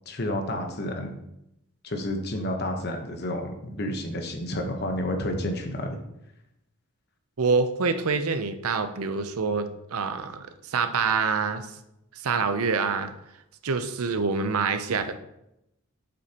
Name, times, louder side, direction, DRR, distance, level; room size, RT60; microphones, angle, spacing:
voice 1, 0.1-1.1 1.8-6.0, left 1 dB, 45° left, 4 dB, 1.0 m, -30 dB
voice 2, 7.4-11.7 12.2-13.1 13.6-15.2, right 4 dB, 80° right, 9 dB, 0.6 m, -26 dB
7.8 x 6.6 x 2.9 m, 0.85 s
head